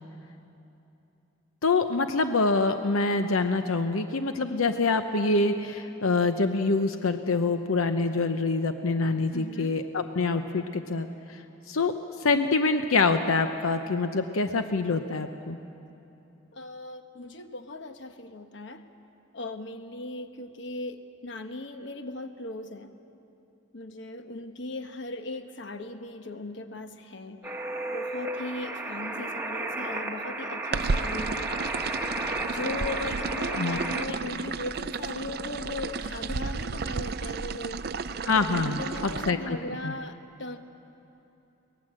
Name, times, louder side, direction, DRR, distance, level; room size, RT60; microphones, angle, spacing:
voice 1, 1.6-11.4 11.7-11.9 12.2-15.6 33.6-33.8 38.2-39.6 39.8-39.9, left 3 dB, 85° left, 8 dB, 0.8 m, -25 dB
voice 2, 9.3-9.7 16.5-18.8 19.3-22.9 23.7-27.4 27.9-31.5 32.5-37.8 38.8-40.6, left 2 dB, 55° left, 7 dB, 1.1 m, -38 dB
sound 1, 27.4-34.1, right 2 dB, 10° right, 1.1 m, -33 dB
sound 2, 30.7-39.3, right 4 dB, 50° right, 0.5 m, -33 dB
23.5 x 18.5 x 7.6 m, 2.9 s
head